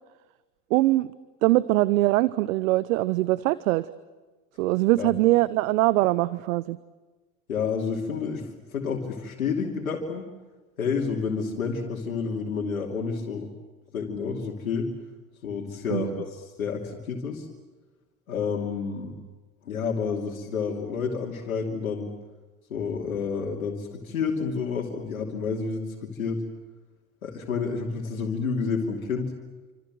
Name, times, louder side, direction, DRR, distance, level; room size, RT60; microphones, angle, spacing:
voice 1, 0.7-1.1 1.4-3.9 4.6-6.8 15.9-16.2, right 18 dB, 75° right, 18 dB, 0.9 m, -22 dB
voice 2, 7.5-10.2 10.8-13.5 13.9-14.9 15.4-17.5 18.3-19.1 19.6-22.1 22.7-26.4 27.2-29.3, left 5 dB, 85° left, 0 dB, 2.9 m, -29 dB
29.0 x 26.0 x 7.7 m, 1.3 s
hypercardioid pair, 60°, 41 cm